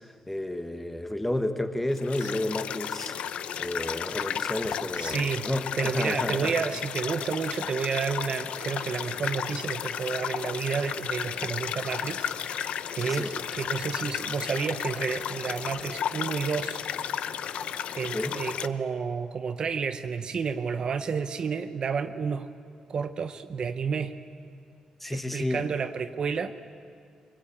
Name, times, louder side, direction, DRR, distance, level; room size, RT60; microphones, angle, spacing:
voice 1, 0.3-3.2 3.6-6.5 13.0-13.3 18.1-18.4 25.0-25.6, left 1 dB, 5° left, 7 dB, 1.2 m, -31 dB
sound 1, 1.9-18.7, left 9 dB, 70° left, 0.7 m, -33 dB
voice 2, 4.9-5.5 5.8-16.8 18.0-22.5 22.9-24.1 25.1-26.5, right 6 dB, 45° right, 9 dB, 0.8 m, -31 dB
24.0 x 22.5 x 8.6 m, 2.3 s
wide cardioid pair, 160°, 2 cm